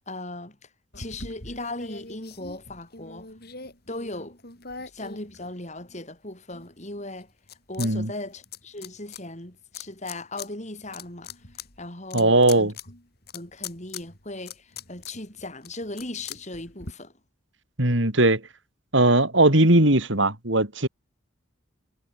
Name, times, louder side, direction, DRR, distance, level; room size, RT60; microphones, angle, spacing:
voice 1, 0.1-0.5 1.0-3.3 3.9-4.3 4.9-7.3 7.7-11.3 11.8-12.7 13.3-14.5 14.9-17.1, left 2 dB, 35° left, 6.6 m, -37 dB
sound 1, 0.9-6.0 6.5-9.2 9.7-10.5 10.8-16.9, left 5 dB, 50° left, 6.6 m, -42 dB
voice 2, 7.8-8.1 12.1-12.7 17.8-18.4 18.9-20.9, right 2 dB, 70° right, 4.3 m, -19 dB
head